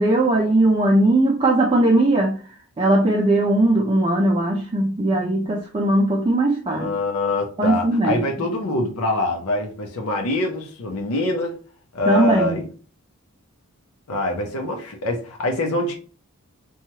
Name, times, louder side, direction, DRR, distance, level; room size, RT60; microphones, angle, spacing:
voice 1, 0.0-2.4 2.8-6.9 7.6-8.2 12.0-12.6, right 1 dB, 25° right, 0.3 m, -19 dB
voice 2, 6.7-11.5 11.9-12.7 14.1-16.0, left 1 dB, 80° left, 0.6 m, -24 dB
3.0 x 2.3 x 2.7 m
head